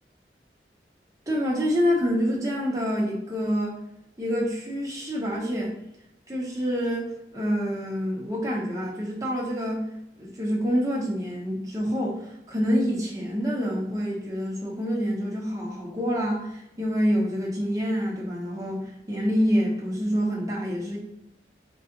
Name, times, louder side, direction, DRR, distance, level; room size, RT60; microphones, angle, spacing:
voice 1, 1.3-3.8 4.2-5.7 6.3-21.0, equal, 20° right, -3 dB, 1.1 m, -27 dB
3.9 x 3.2 x 3.9 m, 0.83 s
head